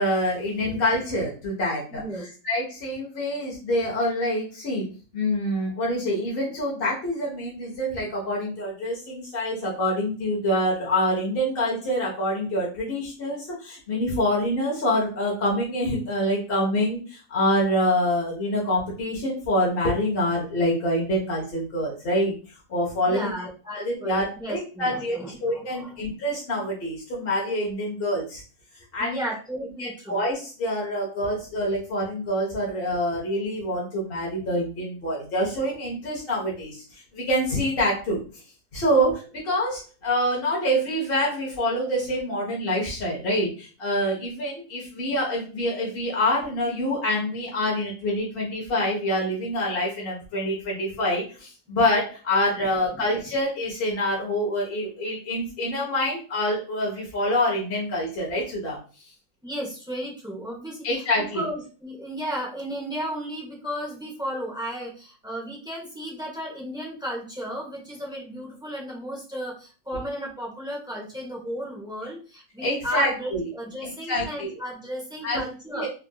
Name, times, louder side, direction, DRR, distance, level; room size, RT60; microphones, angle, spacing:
voice 1, 0.0-4.9 5.1-22.3 22.7-23.3 23.8-28.4 28.9-29.2 29.8-38.2 38.7-58.8 60.8-61.4 72.6-73.4 73.8-74.5 75.2-75.4 75.7-75.9, left 1 dB, 50° left, -4 dB, 0.9 m, -26 dB
voice 2, 1.9-2.3 23.1-26.0 29.0-30.2 52.6-53.0 59.4-75.9, equal, 5° right, -3 dB, 0.5 m, -34 dB
3.5 x 2.4 x 2.3 m, 0.37 s
omnidirectional pair, 1.6 m